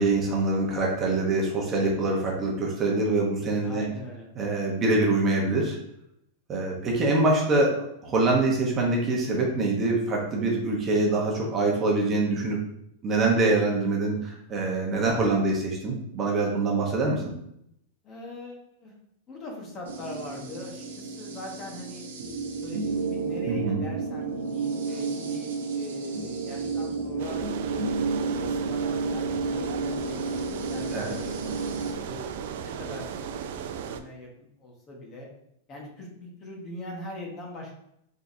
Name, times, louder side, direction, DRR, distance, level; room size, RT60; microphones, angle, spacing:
voice 1, 0.0-3.9 4.3-5.8 6.5-12.6 13.0-17.3 23.5-23.8 24.9-25.0 30.9-31.3, right 2 dB, 20° right, -2 dB, 0.9 m, -25 dB
voice 2, 3.6-4.3 18.0-18.9 19.3-22.1 22.6-28.0 28.3-30.4 30.7-31.2 31.5-32.2 32.6-33.1 33.7-34.3 34.6-35.3 35.7-37.7, left 1 dB, 25° left, -1 dB, 1.1 m, -41 dB
sound 1, 19.9-31.9, right 4 dB, 85° right, 1.0 m, -31 dB
sound 2, 27.2-34.0, right 7 dB, 60° right, 0.4 m, -36 dB
4.5 x 3.6 x 2.7 m, 0.75 s
supercardioid pair, 155°, 0 cm